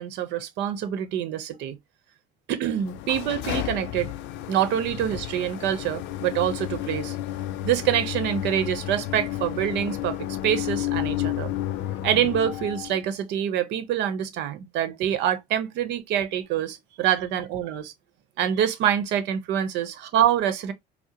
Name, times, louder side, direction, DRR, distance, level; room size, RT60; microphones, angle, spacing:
voice 1, 0.0-1.8 2.5-4.1 4.5-7.2 7.6-11.5 12.0-17.9 18.4-20.7, right 10 dB, 70° right, 0.8 m, -26 dB
sound 1, 2.7-13.0, left 13 dB, 70° left, 0.5 m, -31 dB
4.7 x 2.0 x 2.9 m
cardioid pair, 140°, 19 cm